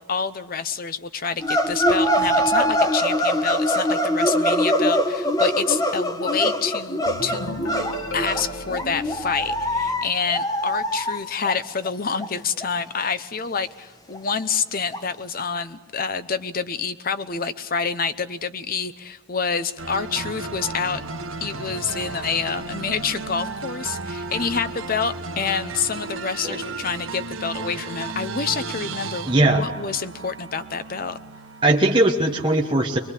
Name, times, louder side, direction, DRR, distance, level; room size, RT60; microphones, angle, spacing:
voice 1, 0.0-7.6 8.1-21.0 21.4-31.2, left 5 dB, 45° left, 12 dB, 0.9 m, -27 dB
sound 1, 1.4-11.6 11.8-11.9 12.2-12.3 12.6-12.7 13.1-13.2 13.6-13.7 14.1-14.2 14.9-15.0, equal, 15° left, 1.1 m, -23 dB
sound 2, 7.0-10.8, equal, 80° left, 2.8 m, -35 dB
sound 3, 19.8-32.1, right 3 dB, 75° right, 1.4 m, -34 dB
voice 2, 29.3-29.6 31.6-33.0, right 2 dB, 25° right, -1 dB, 1.2 m, -19 dB
23.0 x 22.5 x 8.5 m, 1.2 s
head